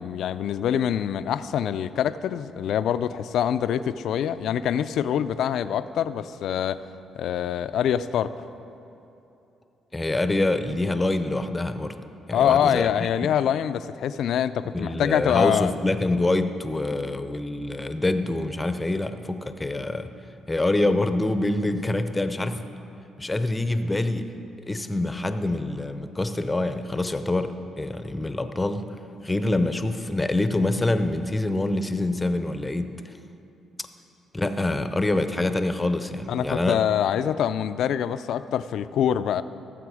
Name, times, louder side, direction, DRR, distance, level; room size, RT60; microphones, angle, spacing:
voice 1, 0.0-6.8 7.2-8.3 12.3-15.7 36.3-39.4, left 9 dB, 75° left, 13 dB, 0.4 m, -25 dB
voice 2, 9.9-11.9 12.3-12.9 14.7-20.1 20.5-22.6 23.2-24.3 24.7-28.8 29.2-33.1 34.3-36.8, left 2 dB, 15° left, 9 dB, 0.6 m, -25 dB
16.0 x 7.7 x 4.9 m, 2.9 s
cardioid pair, 90°, 0 cm